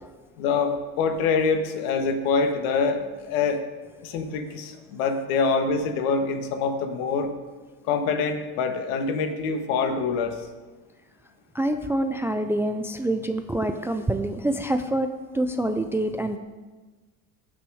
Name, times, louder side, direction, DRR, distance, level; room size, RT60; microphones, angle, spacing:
voice 1, 0.4-3.6 4.0-7.3 7.8-10.4, left 4 dB, 75° left, 6 dB, 1.7 m, -25 dB
voice 2, 11.5-16.4, right 1 dB, 5° right, 7 dB, 0.3 m, -26 dB
18.0 x 6.3 x 4.9 m, 1.3 s
supercardioid pair, 115°, 42 cm